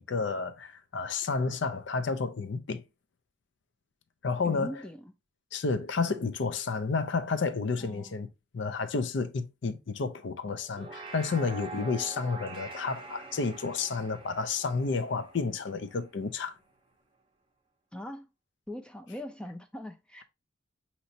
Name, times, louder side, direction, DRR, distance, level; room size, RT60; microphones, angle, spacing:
voice 1, 0.0-2.8 4.2-4.7 5.5-8.3 8.5-16.6, left 4 dB, 60° left, 0.5 m, -31 dB
voice 2, 4.4-5.1 7.8-8.2 17.9-18.3 18.7-20.2, left 1 dB, 5° left, 0.3 m, -41 dB
sound 1, 10.6-16.1, right 3 dB, 25° right, 0.6 m, -45 dB
5.3 x 2.9 x 2.7 m
head